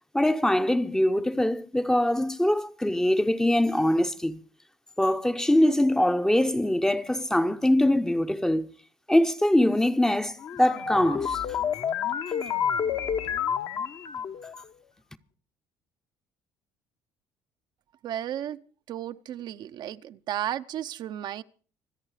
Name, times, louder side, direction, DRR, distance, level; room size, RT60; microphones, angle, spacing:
voice 1, 0.1-4.4 5.0-8.7 9.1-11.4, left 1 dB, 5° left, 0.7 m, -23 dB
sound 1, 10.4-14.6, left 8 dB, 50° left, 1.1 m, -29 dB
voice 2, 18.0-18.6 18.9-21.4, right 11 dB, 55° right, 0.6 m, -33 dB
25.5 x 8.5 x 4.9 m
cardioid pair, 110°, 9 cm